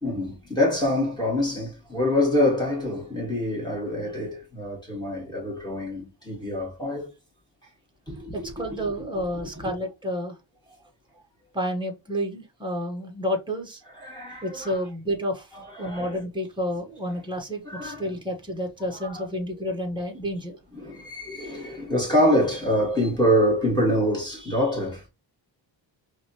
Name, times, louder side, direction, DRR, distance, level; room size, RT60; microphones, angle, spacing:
voice 1, 0.0-7.1 8.1-8.7 9.6-9.7 14.0-14.8 15.5-16.2 17.6-18.1 19.0-19.3 19.5-19.6 20.7-25.1, left 1 dB, 10° left, 2.3 m, -25 dB
voice 2, 8.3-10.4 11.5-13.8 14.4-20.6, equal, 10° right, 1.0 m, -30 dB
4.9 x 2.8 x 2.9 m
wide cardioid pair, 170°, 45 cm